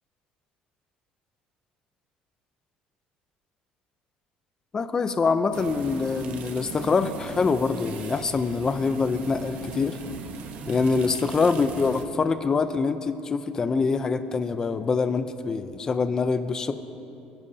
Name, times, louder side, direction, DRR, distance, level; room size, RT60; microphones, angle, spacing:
voice 1, 4.7-10.0 10.7-16.7, left 4 dB, 25° left, 10 dB, 0.6 m, -25 dB
sound 1, 5.5-12.1, right 5 dB, 60° right, 1.0 m, -39 dB
26.5 x 10.5 x 2.8 m, 2.7 s
cardioid pair, 150°, 3 cm